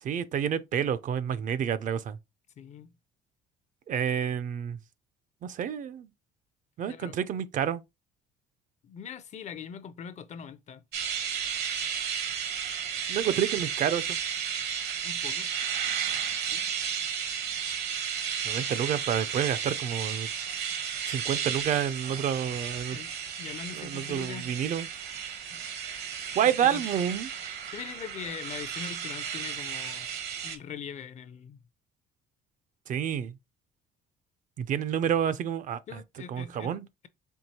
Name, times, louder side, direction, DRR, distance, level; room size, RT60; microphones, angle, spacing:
voice 1, 0.0-2.2 3.9-4.8 5.4-6.1 6.8-7.8 13.1-14.2 18.4-20.3 21.1-23.0 23.8-24.9 26.3-27.3 32.9-33.4 34.6-36.0 36.3-36.9, right 9 dB, 50° right, 0.4 m, -29 dB
voice 2, 2.6-2.9 6.9-7.2 8.8-10.8 15.0-15.5 16.5-16.7 22.9-24.5 25.5-25.6 26.6-26.8 27.7-30.1 30.4-31.6 35.9-37.1, left 7 dB, 45° left, 0.5 m, -42 dB
sound 1, 10.9-30.6, right 7 dB, 70° right, 1.0 m, -33 dB
4.5 x 2.9 x 2.8 m
cardioid pair, 110°, 17 cm